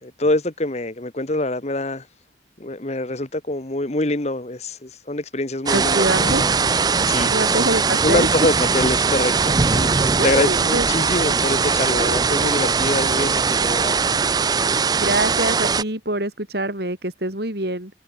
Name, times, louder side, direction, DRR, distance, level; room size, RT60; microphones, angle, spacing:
voice 1, 0.0-2.1 2.6-6.5 6.9-7.3 8.0-14.0, left 2 dB, 35° left, 1.4 m, -25 dB
sound 1, 5.7-15.8, right 5 dB, 20° right, 0.4 m, -20 dB
voice 2, 5.7-6.4 7.3-8.3 10.2-10.9 15.0-17.9, right 1 dB, 60° right, 5.0 m, -24 dB
head